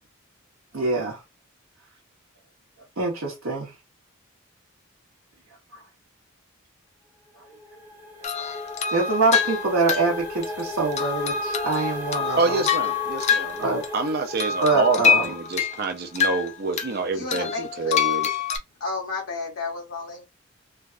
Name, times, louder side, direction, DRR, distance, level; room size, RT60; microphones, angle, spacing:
voice 1, 0.7-1.2 3.0-3.7 8.4-8.5 8.9-12.6 13.6-13.8 14.6-15.2, right 3 dB, 75° right, 1.0 m, -24 dB
sound 1, 7.3-16.0, left 1 dB, 10° right, 1.1 m, -36 dB
sound 2, 8.2-14.1 14.4-16.9 17.3-18.6, left 7 dB, 35° left, 0.4 m, -26 dB
voice 2, 12.4-18.3, right 4 dB, 50° right, 0.5 m, -27 dB
voice 3, 17.1-18.0 18.8-20.2, left 3 dB, 85° left, 0.8 m, -32 dB
3.3 x 2.3 x 2.4 m
head